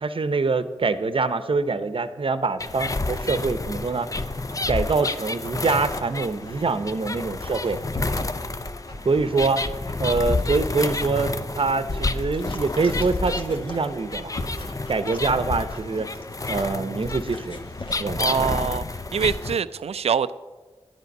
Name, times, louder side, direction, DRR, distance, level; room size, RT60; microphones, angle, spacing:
voice 1, 0.0-4.1 4.7-7.8 9.0-9.7 10.0-14.3 14.9-16.1 16.5-17.6 18.0-18.3, right 4 dB, 60° right, 12 dB, 0.7 m, -24 dB
sound 1, 2.6-19.6, left 3 dB, 35° left, 0.6 m, -30 dB
Dog, 4.1-17.9, left 1 dB, 55° left, 1.5 m, -39 dB
voice 2, 18.2-18.8 19.1-20.3, right 7 dB, 80° right, 16 dB, 0.4 m, -24 dB
10.5 x 9.3 x 5.4 m, 1.4 s
cardioid pair, 45°, 10 cm